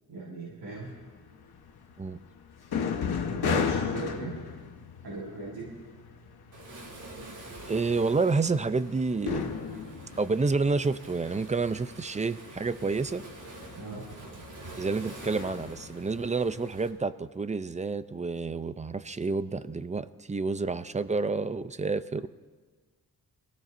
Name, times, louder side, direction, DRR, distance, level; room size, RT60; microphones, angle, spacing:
voice 1, 0.1-0.9 3.3-4.3 5.0-5.6 13.8-14.0, right 2 dB, 70° right, -6 dB, 5.8 m, -38 dB
sound 1, 0.8-7.0 7.3-16.3, left 6 dB, 80° left, 1.2 m, -35 dB
Waves surf, 6.5-16.9, right 2 dB, 50° right, 2.9 m, -47 dB
voice 2, 7.7-9.5 10.2-13.2 14.8-22.3, right 4 dB, 20° right, 13 dB, 0.5 m, -29 dB
27.0 x 17.5 x 2.6 m, 1.4 s
wide cardioid pair, 115°, 38 cm